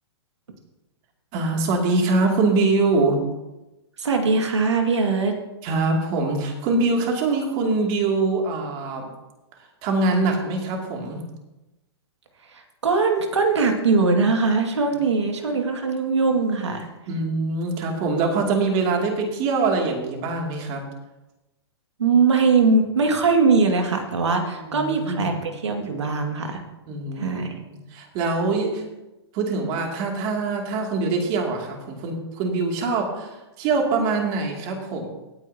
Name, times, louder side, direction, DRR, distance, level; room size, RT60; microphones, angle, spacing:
voice 1, 1.3-3.2 5.6-9.1 9.6-11.2 17.1-20.9 24.5-25.3 26.9-27.4 27.7-28.8 29.3-35.1, right 3 dB, 35° right, 1 dB, 2.6 m, -24 dB
voice 2, 4.0-5.4 12.5-16.9 22.0-26.6 27.2-27.5, right 4 dB, 90° right, 4 dB, 2.1 m, -21 dB
17.0 x 9.4 x 2.9 m, 1.0 s
hypercardioid pair, 135°, 14 cm